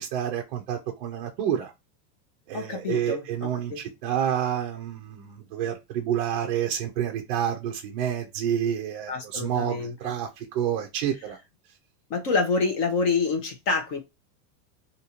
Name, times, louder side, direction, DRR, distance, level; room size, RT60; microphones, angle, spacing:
voice 1, 0.0-1.7 2.5-11.4, right 9 dB, 35° right, 0.4 m, -29 dB
voice 2, 2.5-3.8 9.1-10.1 12.1-14.0, left 4 dB, 45° left, 1.0 m, -27 dB
2.8 x 2.6 x 4.3 m
supercardioid pair, 165°, 49 cm